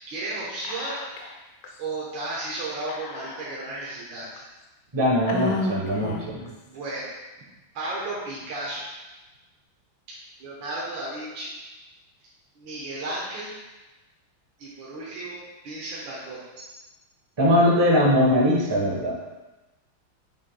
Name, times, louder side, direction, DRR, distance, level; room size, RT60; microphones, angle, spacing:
voice 1, 0.1-1.0 1.8-4.4 6.7-7.1 7.7-8.9 10.1-11.5 12.6-13.5 14.6-16.8, right 2 dB, 65° right, -6 dB, 1.8 m, -34 dB
Whispering, 0.6-1.4 1.6-1.7 2.9-3.7 4.4-4.5 5.3-6.5, left 3 dB, 75° left, 0.8 m, -32 dB
voice 2, 4.9-6.5 17.4-19.1, equal, 20° right, -3 dB, 0.7 m, -21 dB
6.6 x 6.4 x 2.2 m, 1.1 s
omnidirectional pair, 2.3 m